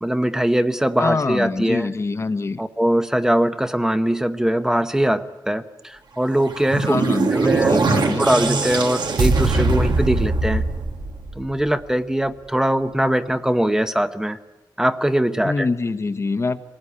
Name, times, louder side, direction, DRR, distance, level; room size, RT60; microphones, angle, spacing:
voice 1, 0.0-1.9 2.6-7.0 7.3-7.8 8.1-10.6 11.3-14.4 14.8-15.7, right 1 dB, 5° right, 9 dB, 0.8 m, -21 dB
voice 2, 1.0-2.6 6.9-8.3 15.4-16.6, left 3 dB, 40° left, 10 dB, 1.1 m, -24 dB
sound 1, 6.3-11.7, right 3 dB, 85° right, 2.2 m, -21 dB
24.5 x 19.5 x 9.9 m, 1.1 s
wide cardioid pair, 165°, 7 cm